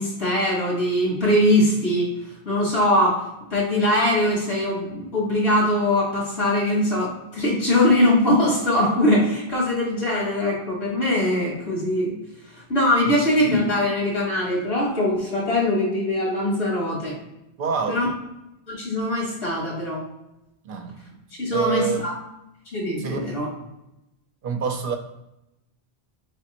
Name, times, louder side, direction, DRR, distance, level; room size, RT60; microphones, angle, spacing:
voice 1, 0.0-2.1 2.5-3.2 3.5-12.1 12.5-17.2 17.9-18.1 18.7-20.0 21.4-22.1 22.7-23.5, left 1 dB, 80° left, -5 dB, 1.9 m, -22 dB
voice 2, 17.6-18.0 20.6-21.1 21.5-22.0 23.0-23.3 24.4-25.0, right 5 dB, 60° right, 5 dB, 0.7 m, -26 dB
4.2 x 3.5 x 2.8 m, 0.90 s
omnidirectional pair, 1.1 m